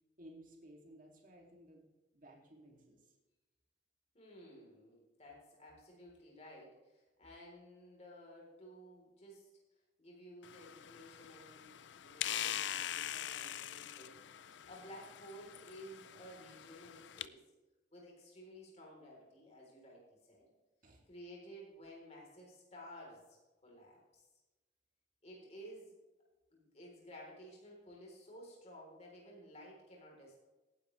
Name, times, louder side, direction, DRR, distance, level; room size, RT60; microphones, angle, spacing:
voice 1, 0.2-1.8 2.1-3.2 20.8-21.1, right 1 dB, 45° right, -1 dB, 2.6 m, -57 dB
voice 2, 4.1-9.5 10.0-17.4 17.9-20.5 21.1-24.3 25.2-25.9 26.5-30.4, equal, 35° left, -2 dB, 3.8 m, -54 dB
sound 1, 10.4-17.3, left 11 dB, 75° left, 0.5 m, -43 dB
18.0 x 10.0 x 3.3 m, 1.1 s
head